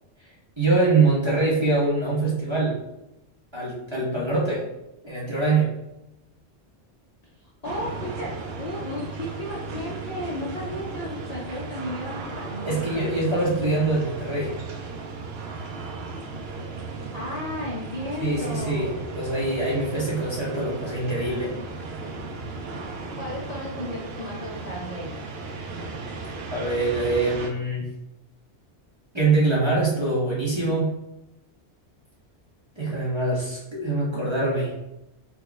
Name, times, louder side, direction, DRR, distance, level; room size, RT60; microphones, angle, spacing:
voice 1, 0.6-2.8 3.5-4.6 5.0-5.8 12.7-14.5 18.2-21.5 26.5-27.9 29.1-30.9 32.8-34.7, right 3 dB, 30° right, -6 dB, 0.7 m, -24 dB
voice 2, 7.6-13.2 17.1-19.1 23.2-25.1, left 1 dB, 45° left, -5 dB, 0.6 m, -34 dB
sound 1, 7.6-27.5, right 3 dB, 70° right, 0.8 m, -36 dB
3.0 x 2.2 x 3.8 m, 0.90 s
omnidirectional pair, 1.2 m